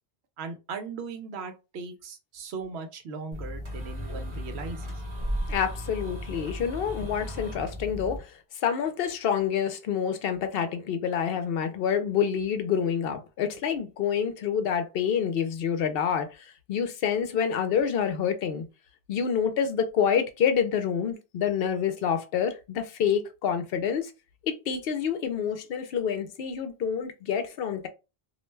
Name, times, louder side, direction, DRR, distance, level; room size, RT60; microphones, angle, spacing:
voice 1, 0.4-4.8, right 4 dB, 85° right, 0.9 m, -38 dB
sound 1, 3.3-8.2, equal, 30° right, 0.8 m, -35 dB
voice 2, 5.5-18.6 19.1-24.1 24.4-27.9, left 7 dB, 70° left, 0.7 m, -27 dB
2.3 x 2.2 x 3.1 m
omnidirectional pair, 1.1 m